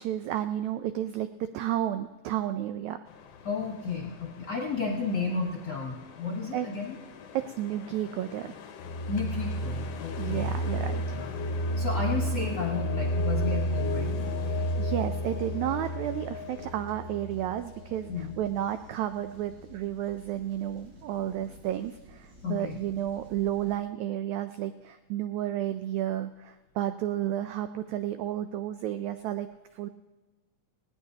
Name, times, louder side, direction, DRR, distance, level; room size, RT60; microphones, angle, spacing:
voice 1, 0.0-3.0 6.5-6.7 7.3-8.5 10.2-11.2 14.4-29.9, right 12 dB, 90° right, 10 dB, 1.6 m, -32 dB
sound 1, 3.0-16.7, left 7 dB, 70° left, 1.5 m, -46 dB
voice 2, 3.4-7.0 9.1-10.5 11.1-11.3 11.8-14.4 18.1-18.3 22.4-22.8, left 4 dB, 45° left, -1 dB, 1.3 m, -33 dB
sound 2, 8.8-18.6, equal, 85° left, 1.0 m, -31 dB
sound 3, 13.0-23.8, left 1 dB, 65° right, 6.0 m, -54 dB
18.5 x 18.0 x 2.8 m, 1.2 s
omnidirectional pair, 3.9 m